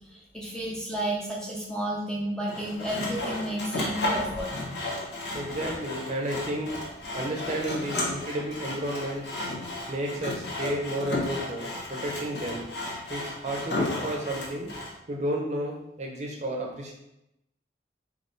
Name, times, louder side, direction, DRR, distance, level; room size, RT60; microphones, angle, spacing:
voice 1, 0.1-4.5, right 1 dB, 5° left, -4 dB, 0.6 m, -32 dB
Sawing, 2.5-14.9, left 1 dB, 75° left, 1.1 m, -33 dB
sound 1, 4.1-5.8 7.2-7.3 8.9-9.0 11.0-11.1 12.5-12.6, equal, 45° left, 1.1 m, -46 dB
voice 2, 5.3-6.8 7.1-9.4 9.9-12.7 13.1-14.7 15.1-16.9, right 1 dB, 40° right, -1 dB, 0.7 m, -32 dB
3.9 x 2.8 x 3.9 m, 0.84 s
head